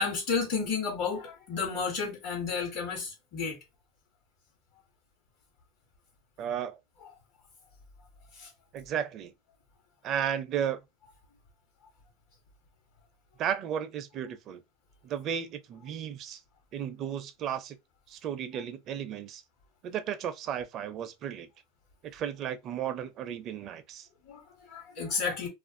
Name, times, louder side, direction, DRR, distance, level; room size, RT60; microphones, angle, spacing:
voice 1, 0.0-3.6 7.0-7.1 8.3-8.5 24.3-25.5, left 5 dB, 65° left, 1.1 m, -32 dB
voice 2, 6.4-6.8 8.7-9.3 10.0-10.8 13.4-14.6 15.0-16.4 16.7-17.8 18.1-19.4 19.8-21.5 22.0-24.1, right 9 dB, 40° right, 0.4 m, -34 dB
2.4 x 2.3 x 2.5 m
supercardioid pair, 125°, 0 cm